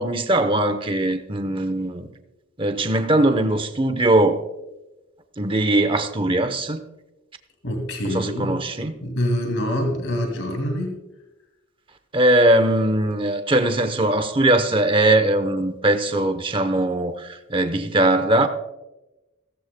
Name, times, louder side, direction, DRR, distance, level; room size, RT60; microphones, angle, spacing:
voice 1, 0.0-2.1 2.6-4.4 5.4-6.8 8.0-8.9 12.1-18.5, right 1 dB, 25° right, 0.8 m, -20 dB
voice 2, 7.6-8.6 9.0-10.9, equal, 65° left, 2.3 m, -25 dB
16.5 x 14.5 x 2.2 m
head